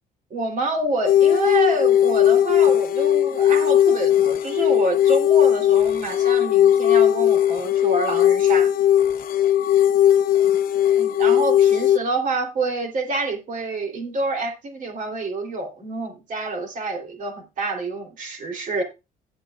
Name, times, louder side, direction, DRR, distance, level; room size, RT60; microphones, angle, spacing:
voice 1, 0.3-8.7 11.0-18.8, right 2 dB, 50° right, 3.2 m, -27 dB
sound 1, 1.1-12.0, left 10 dB, 55° left, 0.7 m, -18 dB
16.0 x 8.1 x 2.4 m
cardioid pair, 110°, 17 cm